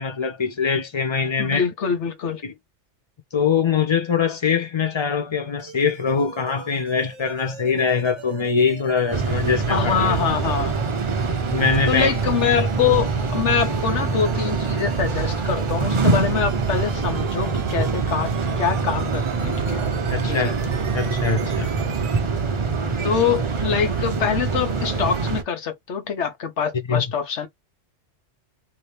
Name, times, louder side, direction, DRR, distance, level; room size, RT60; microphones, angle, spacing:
voice 1, 0.0-1.7 2.4-2.5 3.3-10.2 11.5-12.1 20.1-20.6 20.9-21.7 26.9-27.0, left 6 dB, 35° left, 0.4 m, -23 dB
voice 2, 1.4-2.4 9.7-10.8 11.9-19.8 20.2-20.5 23.0-27.5, left 7 dB, 70° left, 1.2 m, -24 dB
sound 1, 5.6-22.2, right 8 dB, 80° right, 1.0 m, -40 dB
sound 2, 8.9-22.1, right 4 dB, 55° right, 1.0 m, -42 dB
sound 3, 9.1-25.4, right 4 dB, 35° right, 0.5 m, -24 dB
2.8 x 2.7 x 3.2 m
omnidirectional pair, 1.3 m